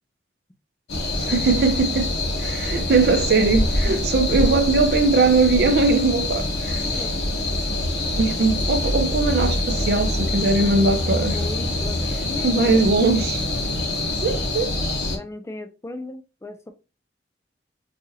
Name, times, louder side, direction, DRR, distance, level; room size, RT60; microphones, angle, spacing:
sound 1, 0.9-15.2, left 1 dB, 65° left, 1.0 m, -25 dB
voice 1, 1.2-2.1 2.4-7.0 8.2-11.4 12.4-13.5 14.2-14.8, right 3 dB, 60° right, 0.4 m, -20 dB
voice 2, 6.8-7.1 11.3-12.9 15.1-16.7, left 2 dB, 15° left, 0.3 m, -37 dB
4.0 x 2.5 x 2.7 m
head